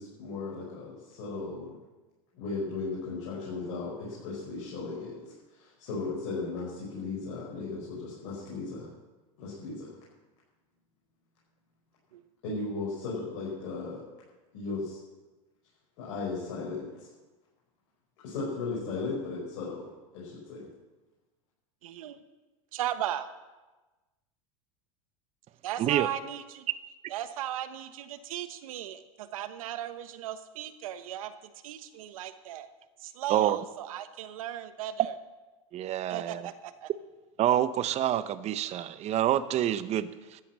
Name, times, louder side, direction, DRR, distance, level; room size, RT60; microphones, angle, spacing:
voice 1, 0.0-1.8 2.3-8.9 9.4-10.0 12.4-14.0 14.5-15.0 16.0-16.9 18.2-19.9 20.1-20.7, left 3 dB, 65° left, -6 dB, 5.4 m, -36 dB
voice 2, 21.8-22.2 22.7-23.3 25.6-26.7 27.1-32.7 33.0-35.1 36.1-36.9, right 11 dB, 80° right, 11 dB, 1.1 m, -37 dB
voice 3, 35.7-36.4 37.4-40.4, right 11 dB, 40° right, 14 dB, 0.8 m, -27 dB
13.0 x 9.1 x 7.6 m, 1.2 s
hypercardioid pair, 105°, 17 cm